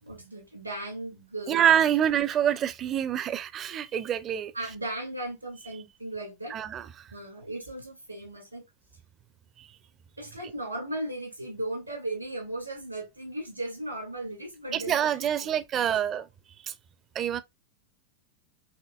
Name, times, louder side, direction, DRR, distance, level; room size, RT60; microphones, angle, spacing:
voice 1, 0.0-1.7 4.5-6.6 7.1-8.6 10.2-16.2, right 1 dB, 90° right, 2.1 m, -37 dB
voice 2, 1.5-4.5 6.5-7.1 9.6-9.7 14.7-16.3 16.6-16.7 17.1-17.4, right 9 dB, 30° right, 0.5 m, -26 dB
5.7 x 2.8 x 2.3 m
figure-of-eight pair, 90°, 0 cm